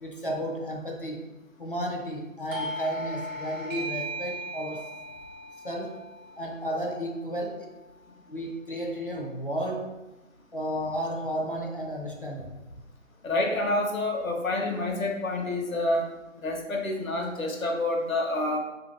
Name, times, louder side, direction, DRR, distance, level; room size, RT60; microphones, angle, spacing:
voice 1, 0.0-1.3 1.6-4.9 5.6-6.1 6.4-7.7 8.3-10.0 10.5-12.6, equal, 45° left, 1 dB, 0.5 m, -33 dB
Doorbell, 2.5-7.8, right 1 dB, 70° right, 0.7 m, -38 dB
voice 2, 13.2-16.1 16.4-18.6, left 2 dB, 80° left, 1 dB, 1.0 m, -28 dB
3.3 x 2.7 x 3.1 m, 1.0 s
figure-of-eight pair, 175°, 40 cm